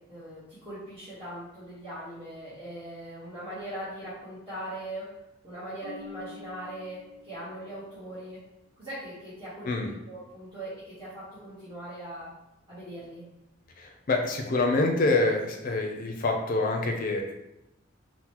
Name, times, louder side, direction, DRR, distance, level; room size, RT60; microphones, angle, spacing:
voice 1, 0.0-5.1 5.4-8.4 8.8-12.3 12.7-13.2, right 1 dB, 25° right, -13 dB, 1.1 m, -40 dB
Marimba xylophone, 5.8-7.9, left 6 dB, 65° right, 0.7 m, -47 dB
voice 2, 13.8-17.3, left 2 dB, 45° left, 2 dB, 0.5 m, -26 dB
3.7 x 2.1 x 2.9 m, 0.90 s
head